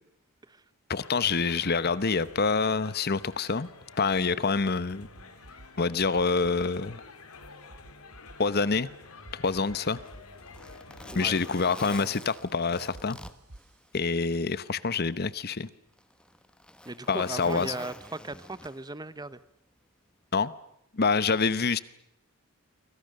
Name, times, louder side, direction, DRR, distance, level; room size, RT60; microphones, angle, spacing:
voice 1, 0.9-3.7 4.0-5.1 5.8-7.0 8.4-8.9 9.3-10.0 11.1-13.2 13.9-15.7 17.1-17.7 20.3-20.5 20.9-21.8, left 4 dB, 45° left, 17 dB, 0.9 m, -26 dB
sound 1, 1.0-12.0, left 3 dB, 75° left, 3.7 m, -49 dB
sound 2, 5.0-5.7 6.0-6.7 7.4-8.4 9.2-10.2 10.5-11.2 12.9-13.7, right 1 dB, 75° right, 1.4 m, -49 dB
Zipper (clothing), 9.9-14.3 14.7-14.8 15.6-19.1 20.2-20.4, left 1 dB, 5° left, 1.2 m, -47 dB
voice 2, 16.8-19.4, right 2 dB, 20° right, 15 dB, 0.9 m, -37 dB
29.5 x 24.5 x 6.7 m, 0.77 s
head